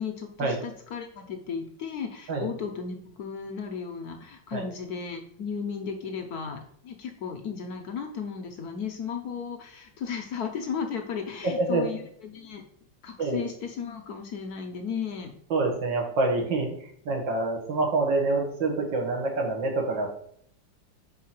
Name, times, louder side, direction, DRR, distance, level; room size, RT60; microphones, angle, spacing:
voice 1, 0.0-12.6 13.0-15.3, left 6 dB, 65° left, 5 dB, 1.0 m, -35 dB
voice 2, 11.4-11.8 13.2-13.4 15.5-20.2, right 2 dB, 70° right, 1 dB, 2.0 m, -26 dB
4.6 x 4.1 x 5.8 m, 0.64 s
omnidirectional pair, 2.0 m